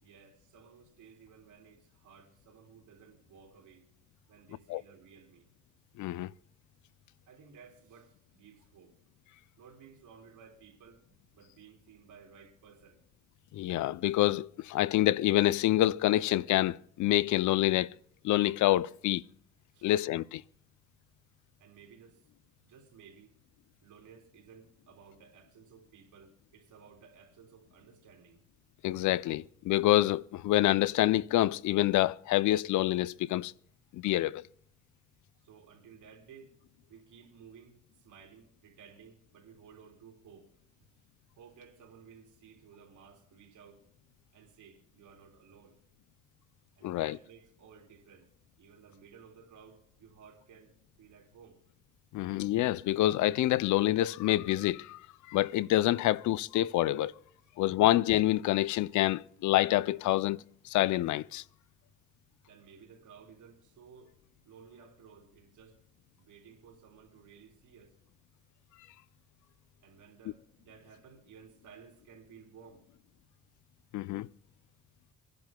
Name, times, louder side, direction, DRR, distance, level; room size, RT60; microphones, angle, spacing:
voice 1, 0.0-3.9 4.3-5.5 7.3-9.0 9.6-13.0 19.7-19.9 21.6-22.2 22.6-23.3 23.8-28.4 35.4-36.5 36.9-40.7 41.3-43.8 44.3-45.8 46.8-48.3 48.6-51.6 57.4-57.5 62.4-64.2 64.4-65.8 66.2-67.9 69.8-72.9, right 6 dB, 80° right, 3.5 m, -56 dB
voice 2, 6.0-6.3 13.5-17.9 18.2-19.2 19.8-20.4 28.8-33.5 33.9-34.4 46.8-47.2 52.1-55.0 55.3-57.1 57.6-61.4 73.9-74.3, left 15 dB, 75° left, 0.5 m, -27 dB
26.5 x 10.5 x 2.2 m
cardioid pair, 90°, 30 cm